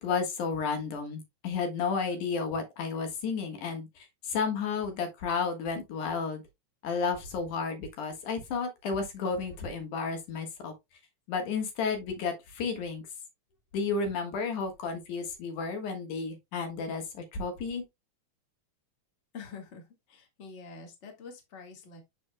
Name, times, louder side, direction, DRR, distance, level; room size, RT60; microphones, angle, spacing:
voice 1, 0.0-6.4 6.8-10.7 11.3-13.1 13.7-17.8, left 5 dB, 90° left, 2.9 m, -32 dB
voice 2, 19.3-22.0, left 5 dB, 30° left, 1.5 m, -46 dB
11.5 x 4.3 x 2.2 m
omnidirectional pair, 3.4 m